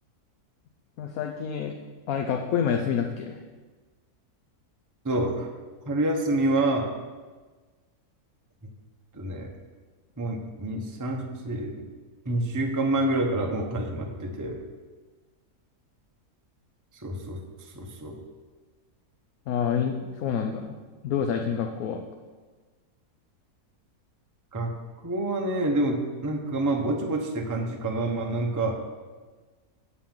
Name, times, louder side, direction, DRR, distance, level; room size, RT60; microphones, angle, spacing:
voice 1, 1.0-1.7 2.1-3.4 19.5-20.7 21.0-22.0, left 7 dB, 70° left, 4 dB, 1.1 m, -28 dB
voice 2, 5.0-5.5 5.9-6.9 9.1-9.5 10.2-11.8 12.2-14.6 16.9-17.4 17.7-18.2 24.5-24.7 25.0-28.8, right 2 dB, 15° right, 1 dB, 0.7 m, -27 dB
8.4 x 5.7 x 7.3 m, 1.4 s
omnidirectional pair, 1.6 m